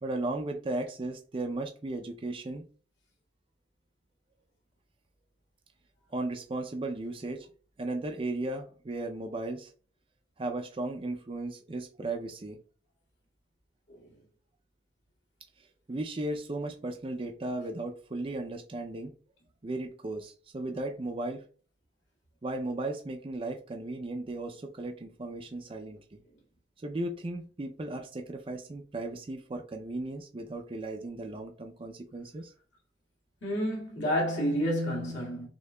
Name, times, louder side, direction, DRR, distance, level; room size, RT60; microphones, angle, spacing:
voice 1, 0.0-2.6 6.1-7.5 7.8-9.7 10.4-12.6 15.9-19.1 19.6-21.4 22.4-26.2 26.8-32.5, right 2 dB, 30° right, 0.4 m, -36 dB
voice 2, 33.4-35.5, equal, 70° left, 2.0 m, -29 dB
6.3 x 2.8 x 2.2 m
head